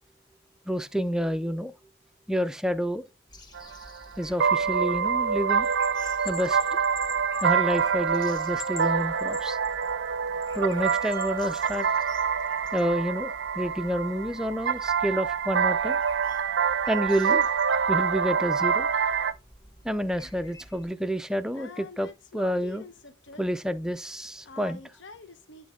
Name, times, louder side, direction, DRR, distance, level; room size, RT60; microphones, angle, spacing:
voice 1, 0.7-1.7 2.3-3.0 4.2-5.7 6.3-6.6 7.4-9.6 10.5-11.9 12.7-16.0 16.9-17.5 17.9-18.9 19.8-22.1 22.3-22.8 23.4-24.8, equal, 5° right, 0.3 m, -29 dB
sound 1, 3.3-20.9, left 1 dB, 20° left, 1.1 m, -50 dB
sound 2, 3.5-19.3, right 6 dB, 65° right, 0.5 m, -26 dB
Bell, 5.6-8.0 8.4-9.9 10.4-11.8, left 8 dB, 50° left, 1.4 m, -44 dB
voice 2, 21.5-23.5 24.4-25.7, left 4 dB, 70° left, 0.8 m, -46 dB
10.5 x 3.5 x 3.6 m
head